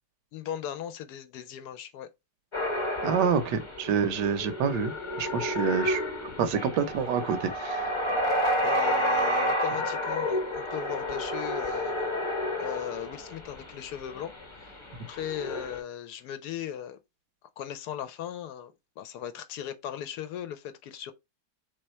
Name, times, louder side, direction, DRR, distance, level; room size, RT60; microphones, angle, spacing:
voice 1, 0.3-2.1 8.6-12.1 12.6-14.8 15.1-17.0 17.6-21.1, left 10 dB, 75° left, 1.1 m, -38 dB
sound 1, 2.5-13.5 14.2-14.4 14.9-15.8, equal, 20° left, 0.9 m, -30 dB
voice 2, 3.0-6.0 6.4-7.9, right 6 dB, 80° right, 1.3 m, -27 dB
3.4 x 3.2 x 4.2 m
omnidirectional pair, 1.8 m